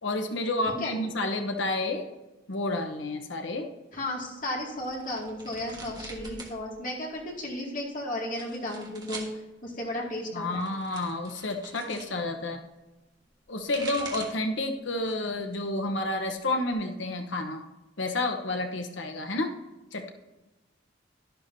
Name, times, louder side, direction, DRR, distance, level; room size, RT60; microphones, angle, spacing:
voice 1, 0.0-2.0 2.5-3.7 10.3-12.6 13.5-17.6 18.0-19.5 19.9-20.1, left 2 dB, 75° left, 5 dB, 1.0 m, -30 dB
voice 2, 3.9-9.3 9.6-10.7, left 1 dB, 45° left, -2 dB, 2.2 m, -34 dB
sound 1, 4.8-6.6 6.9-7.5 8.2-9.3 10.4-12.1 13.4-14.5 14.9-15.4 15.8-16.7, right 3 dB, 20° right, 1.5 m, -44 dB
11.5 x 11.5 x 2.7 m, 1.1 s
head